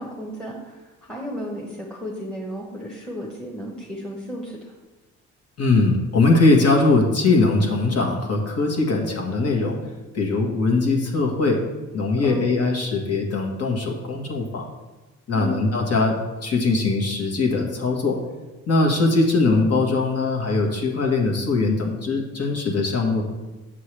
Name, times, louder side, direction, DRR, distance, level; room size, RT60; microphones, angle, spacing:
voice 1, 0.0-4.7 12.2-12.5 15.3-15.6, equal, 5° left, -3 dB, 1.1 m, -33 dB
voice 2, 5.6-9.8 10.1-11.6 11.9-14.7 15.3-18.2 18.7-23.2, left 3 dB, 55° left, 0 dB, 1.6 m, -21 dB
7.5 x 6.8 x 3.3 m, 1.2 s
cardioid pair, 90°, 30 cm